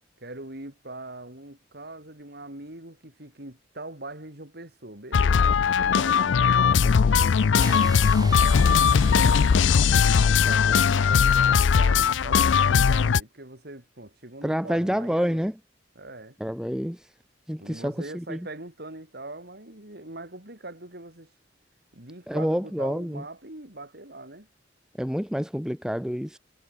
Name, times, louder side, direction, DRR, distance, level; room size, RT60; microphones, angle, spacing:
voice 1, 0.2-9.6 10.4-15.5 15.9-16.4 17.6-21.3 21.9-24.5, right 2 dB, 60° right, 5.0 m, -42 dB
sound 1, 5.1-13.2, left 6 dB, 85° left, 0.4 m, -19 dB
sound 2, 7.6-11.7, right 3 dB, 20° right, 7.9 m, -42 dB
voice 2, 14.4-15.6 16.4-17.0 17.5-18.5 22.3-23.2 25.0-26.4, equal, 5° right, 1.1 m, -28 dB
head